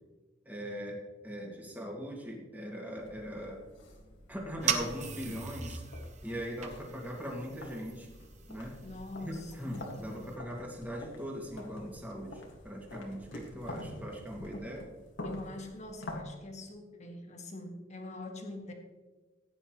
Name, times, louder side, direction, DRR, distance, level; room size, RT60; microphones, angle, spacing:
voice 1, 0.5-3.6 4.3-5.8 6.2-8.1 8.5-8.8 9.2-14.9, equal, 10° right, -1 dB, 2.2 m, -40 dB
sound 1, 3.0-16.2, left 1 dB, 80° left, 1.9 m, -47 dB
sound 2, 4.6-10.4, right 6 dB, 40° right, 0.9 m, -39 dB
voice 2, 8.8-10.4 15.2-18.7, left 2 dB, 40° left, 2 dB, 1.8 m, -44 dB
15.5 x 9.6 x 3.1 m, 1.3 s
head